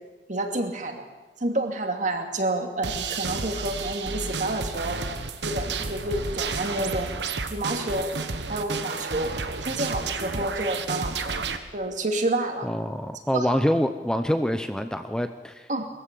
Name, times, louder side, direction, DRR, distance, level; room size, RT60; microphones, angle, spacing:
voice 1, 0.3-1.0 1.4-5.0 5.4-7.1 7.5-8.1 8.5-9.3 9.6-11.4 11.7-12.7 13.3-13.6 15.7-15.9, right 1 dB, 45° right, 5 dB, 2.5 m, -29 dB
sound 1, 2.8-11.6, right 4 dB, 80° right, 1.5 m, -31 dB
voice 2, 12.6-15.7, equal, 5° left, 8 dB, 0.7 m, -26 dB
22.0 x 14.5 x 8.5 m, 1.3 s
head